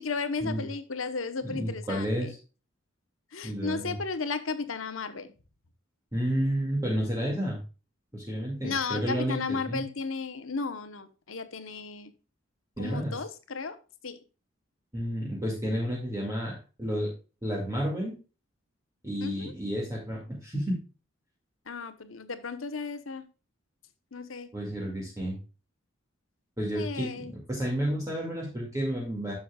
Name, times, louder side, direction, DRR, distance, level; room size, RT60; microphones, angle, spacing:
voice 1, 0.0-2.3 3.3-5.3 8.6-12.1 12.8-13.8 14.0-14.2 19.2-19.5 21.7-23.2 24.1-24.5 26.7-27.3, left 4 dB, 85° left, 11 dB, 1.0 m, -34 dB
voice 2, 1.5-2.4 3.4-4.0 6.1-7.6 8.1-9.4 9.7-9.8 12.8-13.1 14.9-17.1 17.4-18.1 19.0-20.8 24.5-25.4 26.6-29.3, equal, 15° right, -3 dB, 2.1 m, -31 dB
10.5 x 7.0 x 2.3 m, 0.33 s
head